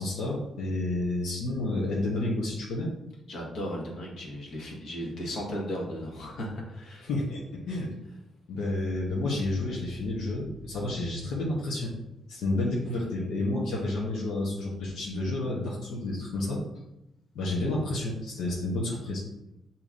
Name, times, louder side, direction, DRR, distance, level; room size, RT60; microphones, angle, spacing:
voice 1, 0.0-2.9 7.0-7.9 8.5-11.9 12.3-16.6 17.3-19.2, left 2 dB, 90° left, -4 dB, 0.9 m, -30 dB
voice 2, 3.3-7.1, equal, 60° left, -2 dB, 1.2 m, -36 dB
6.7 x 2.9 x 2.5 m, 0.90 s
cardioid pair, 155°, 0 cm